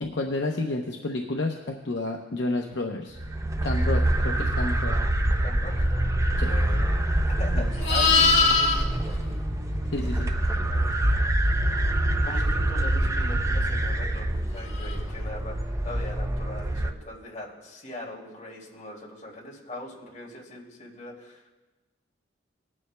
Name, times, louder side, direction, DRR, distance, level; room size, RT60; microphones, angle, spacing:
voice 1, 0.0-3.2 3.6-5.0 6.4-6.5 7.5-7.7 9.9-10.3, left 2 dB, 65° left, 2 dB, 0.7 m, -30 dB
sound 1, 3.2-16.9, right 1 dB, 15° right, 0.4 m, -25 dB
voice 2, 5.4-6.1 6.4-7.0 7.4-9.1 10.6-11.5 12.2-21.5, left 1 dB, 40° left, -3 dB, 2.5 m, -41 dB
sound 2, 5.7-11.7, right 1 dB, 50° right, 1.7 m, -43 dB
Livestock farm animals working animals, 7.1-10.4 14.8-15.0, left 4 dB, 85° left, 1.7 m, -24 dB
19.5 x 9.7 x 2.2 m, 1.2 s
head